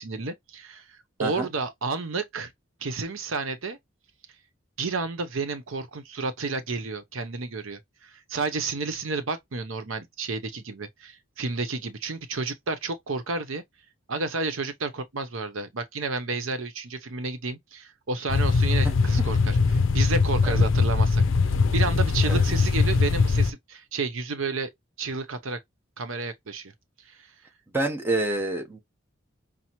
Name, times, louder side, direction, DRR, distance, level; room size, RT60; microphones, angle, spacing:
voice 1, 0.0-2.5 2.8-3.8 4.8-13.6 14.1-21.2 21.7-24.7 25.0-25.6 26.0-26.7 27.1-27.3, right 3 dB, 75° right, 0.8 m, -31 dB
sound 1, 18.3-23.5, left 4 dB, 65° left, 0.5 m, -21 dB
voice 2, 27.7-28.8, right 2 dB, 10° right, 0.8 m, -27 dB
5.7 x 2.0 x 2.9 m
head